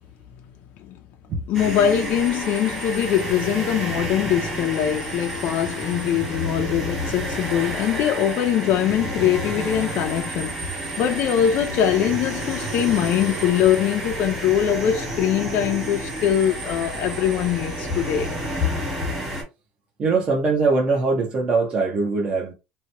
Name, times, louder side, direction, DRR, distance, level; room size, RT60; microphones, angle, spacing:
voice 1, 1.5-10.6 11.0-18.3, left 10 dB, 40° left, 0.4 m, -22 dB
sound 1, 1.5-19.4, right 1 dB, 5° right, 1.5 m, -30 dB
voice 2, 20.0-22.5, right 4 dB, 25° right, 0.7 m, -21 dB
2.8 x 2.2 x 2.7 m
cardioid pair, 160°, 4 cm